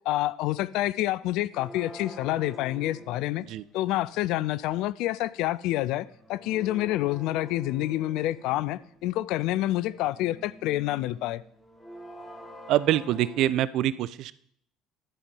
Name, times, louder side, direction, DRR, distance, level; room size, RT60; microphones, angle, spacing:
voice 1, 0.1-3.4 3.7-11.4, left 15 dB, 65° left, 0.3 m, -28 dB
sound 1, 1.5-3.9 5.9-9.0 9.6-13.5, equal, 15° left, 1.7 m, -46 dB
voice 2, 12.7-14.3, right 13 dB, 60° right, 0.3 m, -25 dB
11.0 x 4.4 x 5.4 m
hypercardioid pair, 60°, 0 cm